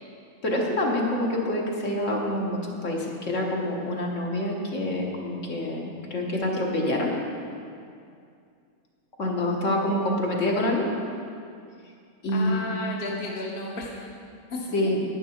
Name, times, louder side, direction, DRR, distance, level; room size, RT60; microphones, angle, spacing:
voice 1, 0.4-7.1 9.2-10.9 12.2-12.6 14.7-15.0, left 1 dB, 55° left, -1 dB, 1.6 m, -26 dB
voice 2, 12.3-13.9 14.5-15.0, left 2 dB, 40° left, -2 dB, 1.2 m, -33 dB
11.0 x 9.9 x 4.4 m, 2.4 s
omnidirectional pair, 1.6 m